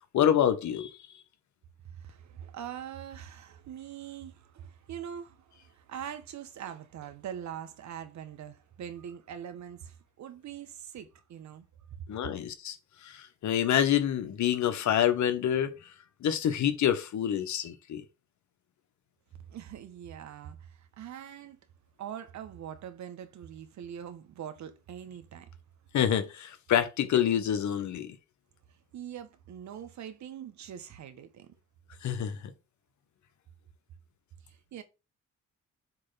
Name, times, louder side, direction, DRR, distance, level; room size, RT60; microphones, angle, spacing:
voice 1, 0.1-0.9 12.1-12.8 13.0-15.7 16.2-18.0 25.9-28.2 32.0-32.4, left 10 dB, 70° left, 1.3 m, -27 dB
voice 2, 1.9-11.6 19.5-21.6 22.0-25.5 28.9-31.5 34.4-34.8, right 9 dB, 70° right, 1.4 m, -43 dB
7.5 x 3.3 x 5.7 m
cardioid pair, 90°, 30 cm